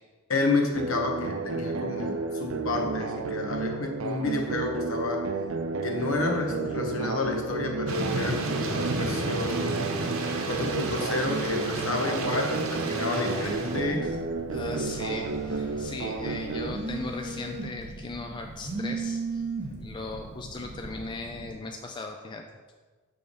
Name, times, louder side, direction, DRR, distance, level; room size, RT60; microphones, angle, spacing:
voice 1, 0.3-5.3 5.8-9.9 10.5-14.1, left 3 dB, 70° left, 2 dB, 0.9 m, -30 dB
sound 1, 0.7-16.7, right 4 dB, 65° right, 0.4 m, -32 dB
Thunder / Rain, 7.9-13.8, right 2 dB, 80° right, 0.8 m, -32 dB
Telephone, 13.4-21.5, right 3 dB, 35° right, 1.2 m, -38 dB
voice 2, 14.5-22.4, left 3 dB, 20° left, 3 dB, 0.3 m, -38 dB
6.8 x 3.4 x 5.3 m, 1.4 s
head